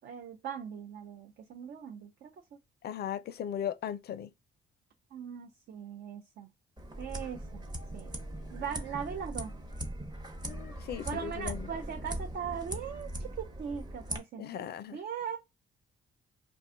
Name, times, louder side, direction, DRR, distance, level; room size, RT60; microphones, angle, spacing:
voice 1, 0.0-2.3 5.1-6.5 7.0-7.7 7.9-8.1 8.5-9.5 11.0-15.4, right 7 dB, 55° right, 0.5 m, -40 dB
voice 2, 2.8-4.3 10.4-11.7 14.4-15.0, left 9 dB, 55° left, 0.4 m, -37 dB
sound 1, 6.8-14.2, right 1 dB, 20° right, 0.8 m, -40 dB
The End of the World, 6.9-13.3, right 5 dB, 80° right, 1.3 m, -57 dB
2.5 x 2.3 x 3.6 m
cardioid pair, 90°, 20 cm